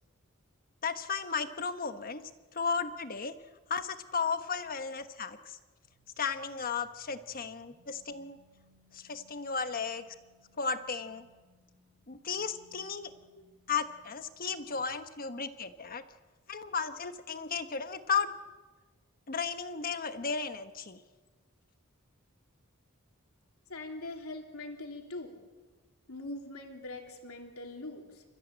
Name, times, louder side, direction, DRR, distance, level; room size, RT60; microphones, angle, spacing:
voice 1, 0.8-2.2 2.5-3.3 3.7-5.6 6.2-8.4 8.9-10.0 10.6-11.3 12.1-13.1 13.7-16.0 16.5-18.3 19.3-21.0, left 5 dB, 40° left, 9 dB, 1.3 m, -34 dB
sound 1, 5.8-15.1, equal, 40° right, 2.7 m, -67 dB
voice 2, 23.7-25.3 26.1-28.2, left 2 dB, 80° left, 3 dB, 3.1 m, -42 dB
29.0 x 14.5 x 8.9 m, 1.3 s
head